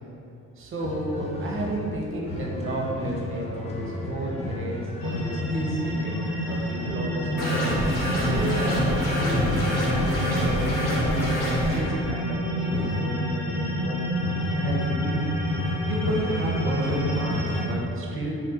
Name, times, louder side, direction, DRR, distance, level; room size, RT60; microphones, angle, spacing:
voice 1, 0.6-6.2 6.5-7.8 8.2-11.2 11.7-14.1 14.5-15.3 15.8-18.3, right 1 dB, 45° right, -2 dB, 0.6 m, -32 dB
sound 1, 0.8-13.7 14.2-17.6, left 1 dB, 20° left, 0.3 m, -33 dB
sound 2, 5.0-17.6, equal, 60° left, 0.9 m, -29 dB
sound 3, 7.4-11.8, equal, 85° left, 1.1 m, -26 dB
2.9 x 2.2 x 3.8 m, 2.8 s
cardioid pair, 90°, 30 cm